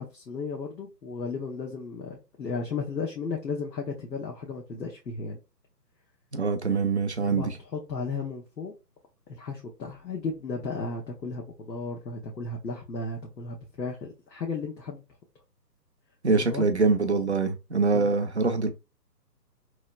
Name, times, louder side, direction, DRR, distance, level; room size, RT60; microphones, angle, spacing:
voice 1, 0.0-5.4 7.2-8.7 9.3-15.0 16.3-16.6 17.9-18.2, left 4 dB, 90° left, 1.1 m, -35 dB
voice 2, 6.3-7.5 16.2-18.7, right 4 dB, 45° right, 0.4 m, -24 dB
3.1 x 3.0 x 2.3 m
hypercardioid pair, 155°, 50 cm